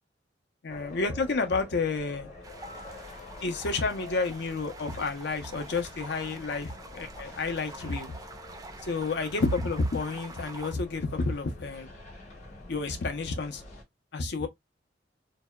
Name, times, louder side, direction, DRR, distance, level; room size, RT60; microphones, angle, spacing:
voice 1, 0.6-2.3 3.4-8.1 8.8-11.9 12.7-13.6 14.1-14.5, left 3 dB, 65° left, 0.6 m, -30 dB
sound 1, 0.7-13.8, left 2 dB, 40° left, 0.9 m, -47 dB
sound 2, 2.4-10.7, right 3 dB, 20° right, 0.4 m, -46 dB
2.7 x 2.1 x 2.2 m
head